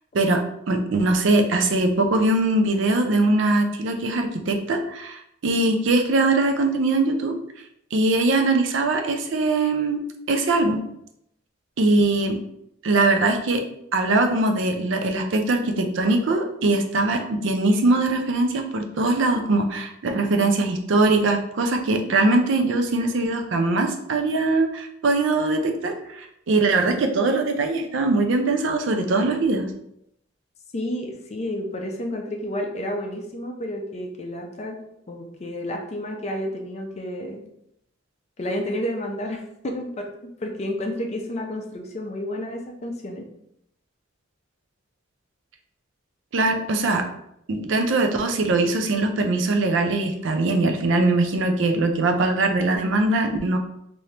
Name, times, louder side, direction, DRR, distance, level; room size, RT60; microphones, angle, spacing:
voice 1, 0.7-7.3 7.9-10.0 10.3-10.8 11.8-12.4 12.8-13.6 13.9-29.7 46.3-47.0 47.5-53.6, right 2 dB, 65° right, 5 dB, 0.5 m, -21 dB
voice 2, 30.7-34.8 35.1-37.4 38.4-43.3, left 1 dB, 35° left, 2 dB, 0.4 m, -31 dB
3.3 x 2.6 x 2.8 m, 0.77 s
head